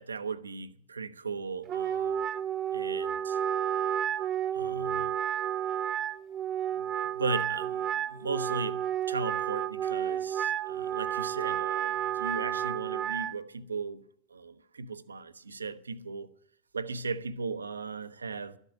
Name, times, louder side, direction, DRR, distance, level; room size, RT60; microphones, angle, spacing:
voice 1, 0.0-2.2 2.7-3.4 4.5-5.1 6.8-6.9 7.1-14.0 14.3-16.3 16.7-18.6, right 4 dB, 75° right, 0.7 m, -37 dB
Wind instrument woodwind instrument, 1.7-13.3, right 10 dB, 30° right, 0.5 m, -31 dB
13.0 x 8.1 x 9.9 m
figure-of-eight pair, 90°, 0 cm